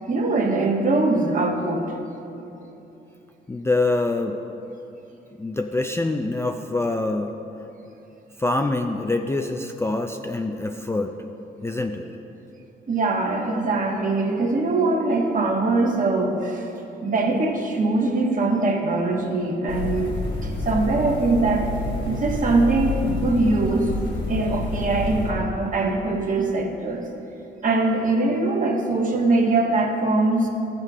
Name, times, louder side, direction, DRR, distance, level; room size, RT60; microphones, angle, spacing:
voice 1, 0.1-2.0 12.9-16.7 17.0-20.1 20.4-21.7 22.1-23.9 24.3-27.0 27.6-30.5, right 2 dB, 45° right, 1 dB, 1.4 m, -22 dB
voice 2, 3.5-4.4 5.4-7.3 8.4-11.1 11.6-12.0, left 2 dB, 15° left, 4 dB, 0.4 m, -25 dB
sound 1, 19.7-25.3, left 2 dB, 65° left, 1.3 m, -28 dB
14.0 x 6.6 x 3.6 m, 2.9 s
cardioid pair, 85°, 19 cm